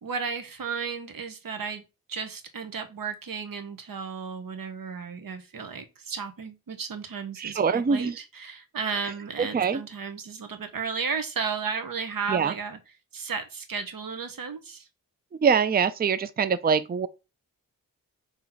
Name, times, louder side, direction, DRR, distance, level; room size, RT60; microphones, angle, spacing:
voice 1, 0.0-12.8 13.1-14.9, right 5 dB, 70° right, 1.1 m, -34 dB
voice 2, 7.4-8.2 9.4-9.8 12.3-12.5 15.4-17.1, right 6 dB, 25° right, 0.4 m, -24 dB
4.4 x 3.1 x 3.9 m
cardioid pair, 50°, 36 cm